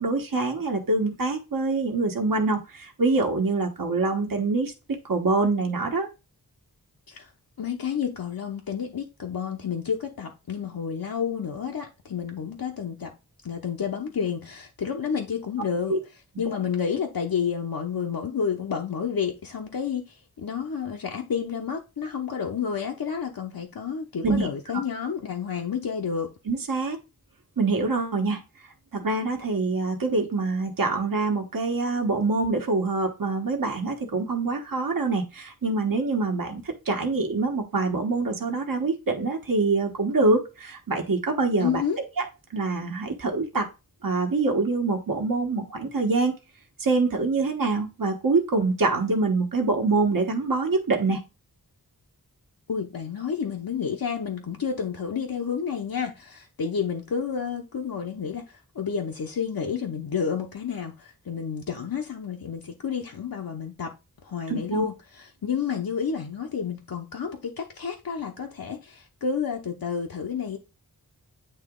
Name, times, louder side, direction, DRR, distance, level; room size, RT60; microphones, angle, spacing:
voice 1, 0.0-4.7 5.1-6.1 15.9-16.0 24.2-24.5 24.7-24.8 26.5-27.0 27.6-28.4 28.9-41.8 42.2-42.3 42.5-43.7 44.0-46.3 46.8-51.2 64.5-64.9, right 3 dB, 60° right, 1.3 m, -25 dB
voice 2, 7.6-13.1 13.4-16.0 16.4-26.3 41.6-42.0 52.7-64.0 64.2-70.6, left 7 dB, 70° left, 0.9 m, -30 dB
8.9 x 3.0 x 3.7 m
wide cardioid pair, 55°, 37 cm